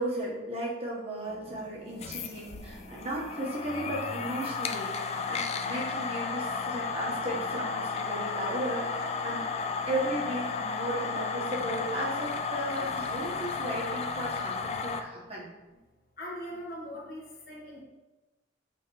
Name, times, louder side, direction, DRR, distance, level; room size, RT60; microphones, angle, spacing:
voice 1, 0.0-9.5 9.9-15.5, right 1 dB, 35° right, -5 dB, 1.4 m, -35 dB
sound 1, 1.2-14.1, left 1 dB, 85° left, 1.6 m, -49 dB
sound 2, 1.9-15.0, left 5 dB, 35° left, 0.4 m, -33 dB
voice 2, 16.2-17.8, equal, 55° left, -3 dB, 1.5 m, -40 dB
7.9 x 3.8 x 3.3 m, 1.1 s
head